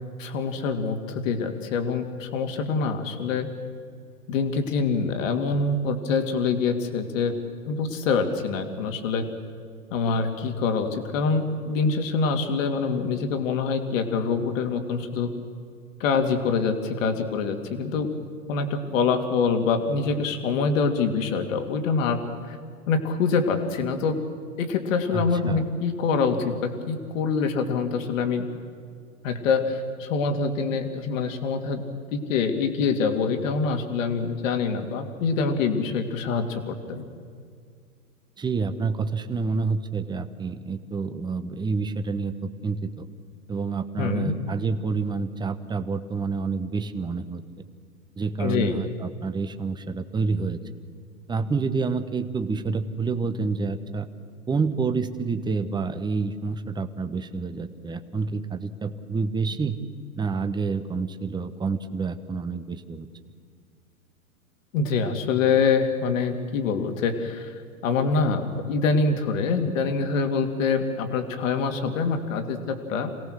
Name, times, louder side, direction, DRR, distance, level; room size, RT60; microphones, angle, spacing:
voice 1, 0.2-3.5 4.3-7.4 7.7-9.2 9.9-15.3 16.0-18.1 18.5-22.2 22.5-22.6 22.9-24.2 24.6-28.4 29.2-37.1 44.0-44.3 48.4-48.7 64.7-67.5 67.8-73.1, left 5 dB, 60° left, 6 dB, 2.7 m, -25 dB
voice 2, 25.1-25.6 38.4-43.0 43.5-47.4 48.2-50.6 51.3-54.1 54.5-59.8 60.2-63.1, right 4 dB, 10° right, 9 dB, 1.1 m, -28 dB
27.5 x 17.5 x 6.5 m, 2.1 s
hypercardioid pair, 110°, 44 cm